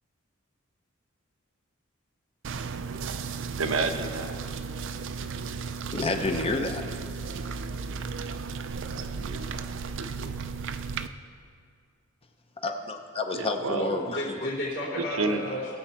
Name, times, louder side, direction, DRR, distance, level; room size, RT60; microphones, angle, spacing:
sound 1, 2.4-11.1, right 5 dB, 65° right, 0.5 m, -35 dB
voice 1, 3.6-4.4 8.7-9.6 10.0-10.4 13.4-13.9 15.0-15.4, right 3 dB, 85° right, 6 dB, 0.9 m, -31 dB
voice 2, 5.9-7.0 12.6-14.3, left 2 dB, 30° left, 5 dB, 0.7 m, -30 dB
voice 3, 13.8-15.7, equal, 65° left, -6 dB, 3.5 m, -32 dB
19.5 x 7.2 x 4.4 m, 2.2 s
head